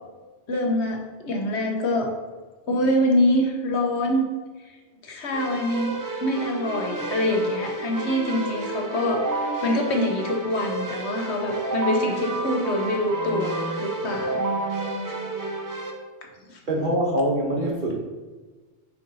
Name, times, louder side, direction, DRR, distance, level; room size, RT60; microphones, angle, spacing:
voice 1, 0.5-2.1 2.6-4.3 4.6-4.7 5.0-5.9 6.2-14.4 15.1-15.2 16.5-16.6, left 1 dB, 75° left, 2 dB, 1.1 m, -25 dB
Keyboard (musical), 5.3-15.9, right 2 dB, 25° right, 0.5 m, -30 dB
voice 2, 16.7-18.0, right 1 dB, 45° right, -1 dB, 1.1 m, -24 dB
6.4 x 5.7 x 2.7 m, 1.3 s
omnidirectional pair, 1.2 m